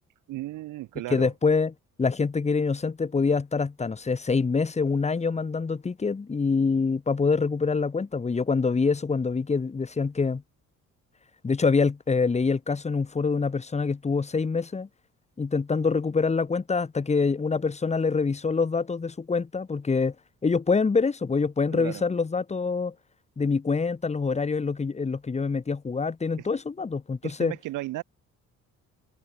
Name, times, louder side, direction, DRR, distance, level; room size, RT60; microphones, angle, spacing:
voice 1, 0.3-1.3 21.7-22.0 26.4-26.5 27.2-28.0, right 16 dB, 90° right, 2.3 m, -34 dB
voice 2, 1.1-1.7 2.0-10.4 11.4-14.9 15.4-20.1 20.4-22.9 23.4-27.5, left 4 dB, 20° left, 1.1 m, -25 dB
cardioid pair, 90°, 30 cm